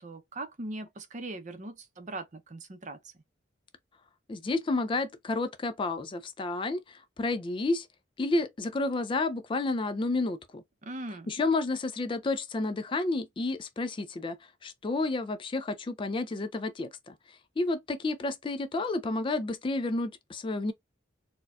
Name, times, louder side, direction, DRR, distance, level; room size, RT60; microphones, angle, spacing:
voice 1, 0.0-3.1 10.8-11.3, right 2 dB, 35° right, 0.6 m, -40 dB
voice 2, 4.3-7.9 8.2-10.6 11.3-14.4 14.6-20.7, left 2 dB, 25° left, 0.3 m, -31 dB
4.2 x 2.2 x 2.3 m
head